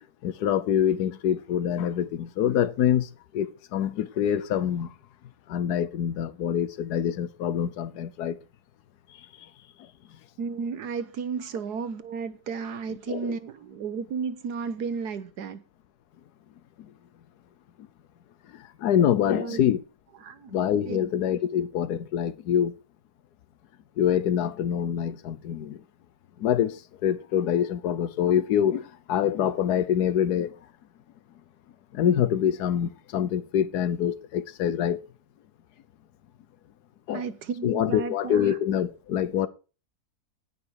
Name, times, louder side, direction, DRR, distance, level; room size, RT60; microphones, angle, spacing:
voice 1, 0.2-3.1 3.3-4.9 5.5-8.4 13.1-13.3 18.8-19.8 20.5-22.7 24.0-25.8 26.4-26.8 27.0-30.5 31.9-35.0 37.1-37.2 37.6-39.5, left 9 dB, 80° left, 1.4 m, -25 dB
voice 2, 10.4-15.6 19.3-19.6 20.2-20.6 20.8-21.1 37.1-38.6, right 5 dB, 80° right, 1.6 m, -33 dB
17.0 x 5.9 x 4.7 m
omnidirectional pair, 1.7 m